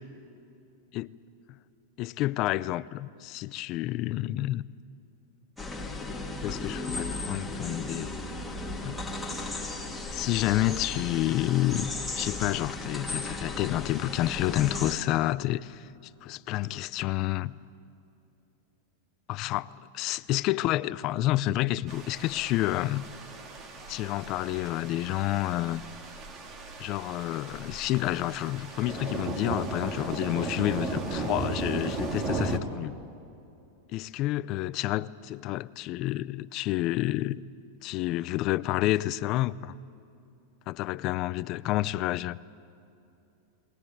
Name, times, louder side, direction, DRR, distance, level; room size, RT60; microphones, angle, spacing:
voice 1, 2.0-4.6 6.4-8.1 8.8-9.0 10.1-15.9 16.2-17.6 19.3-23.0 23.9-25.8 26.8-32.9 33.9-37.4 37.8-39.8 40.7-42.4, left 16 dB, 40° left, 17 dB, 0.5 m, -29 dB
sound 1, 5.6-15.0, left 2 dB, 5° left, 2.7 m, -36 dB
sound 2, 21.9-32.6, right 3 dB, 30° right, 2.1 m, -36 dB
20.0 x 19.5 x 9.3 m, 2.8 s
supercardioid pair, 140°, 0 cm